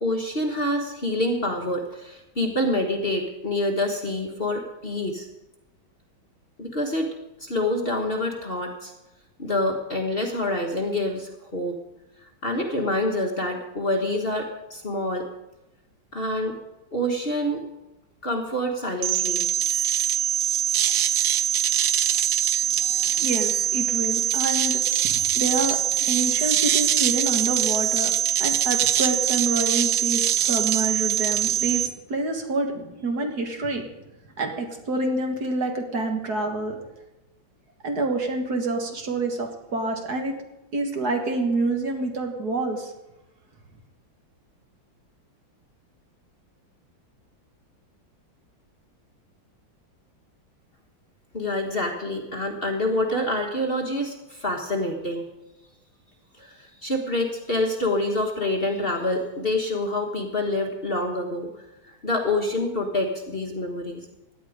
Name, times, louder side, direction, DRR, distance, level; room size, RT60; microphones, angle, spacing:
voice 1, 0.0-5.3 6.6-7.1 7.4-8.9 9.4-11.8 12.4-15.2 16.1-16.6 16.9-17.6 18.2-19.5 51.3-55.2 56.4-56.5 56.8-61.5 61.9-64.1, left 1 dB, 30° left, 2 dB, 1.5 m, -26 dB
sound 1, 19.0-31.9, right 10 dB, 85° right, 1.6 m, -23 dB
voice 2, 23.0-28.1 28.4-33.8 34.4-36.8 37.8-40.3 40.7-42.9, right 2 dB, 55° right, 4 dB, 2.1 m, -27 dB
17.0 x 11.0 x 5.0 m, 0.98 s
omnidirectional pair, 2.2 m